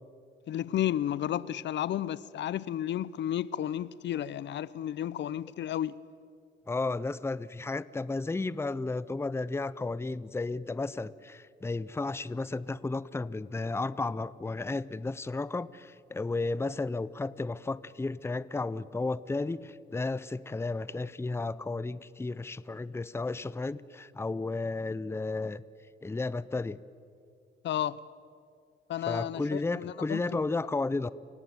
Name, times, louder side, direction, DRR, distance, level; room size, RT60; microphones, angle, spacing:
voice 1, 0.5-6.0 27.6-28.0 28.9-30.4, left 11 dB, 65° left, 0.6 m, -32 dB
voice 2, 6.7-25.6 26.0-26.8 29.0-31.1, left 3 dB, 15° left, 0.6 m, -33 dB
29.0 x 16.5 x 9.4 m
cardioid pair, 90°, 20 cm